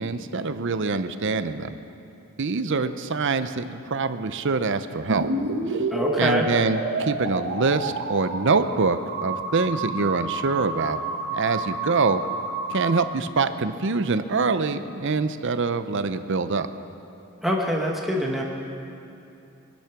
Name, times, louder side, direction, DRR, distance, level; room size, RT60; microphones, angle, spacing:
voice 1, 0.0-1.8 2.4-5.3 5.7-5.8 6.2-11.0 11.3-12.2 12.7-16.7, right 4 dB, 55° right, 11 dB, 0.7 m, -25 dB
sound 1, 5.1-13.0, right 2 dB, 80° right, 1.6 m, -29 dB
voice 2, 5.9-6.5 17.4-18.4, equal, ahead, -2 dB, 1.3 m, -25 dB
22.5 x 10.5 x 6.0 m, 2.7 s
head